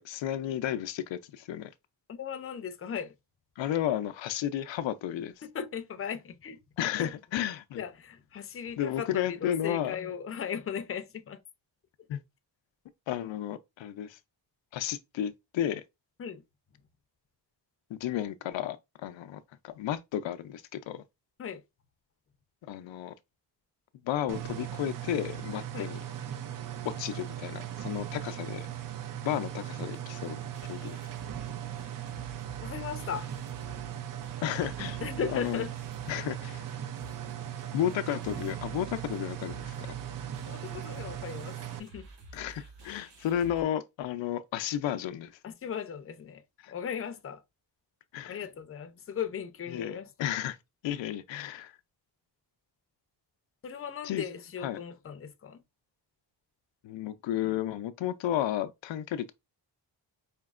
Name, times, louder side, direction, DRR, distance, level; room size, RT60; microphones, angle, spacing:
voice 1, 0.0-1.7 3.6-5.3 6.8-7.8 8.8-10.0 12.1-12.2 13.1-14.2 14.7-15.8 17.9-21.0 22.7-23.1 24.0-26.0 26.8-28.7 29.2-30.4 30.6-31.0 34.4-35.0 35.3-35.6 36.1-36.6 37.7-39.9 42.3-45.4 46.6-46.7 48.1-48.4 49.7-50.6 50.8-51.7 54.0-54.2 54.6-54.8 56.8-59.3, left 11 dB, 90° left, 0.5 m, -33 dB
voice 2, 2.1-3.1 5.4-6.6 7.0-7.1 7.8-11.4 16.2-16.4 21.4-21.6 25.7-25.9 32.6-33.3 35.0-35.7 40.5-42.1 45.4-46.4 46.7-47.4 48.3-50.1 53.6-55.6, left 7 dB, 30° left, 0.5 m, -37 dB
sound 1, 24.3-41.8, right 11 dB, 50° right, 0.5 m, -38 dB
sound 2, 28.1-28.2 28.4-28.7 29.0-29.1 29.3-43.6, right 2 dB, 70° right, 2.1 m, -51 dB
5.1 x 2.8 x 2.4 m
wide cardioid pair, 135°, 44 cm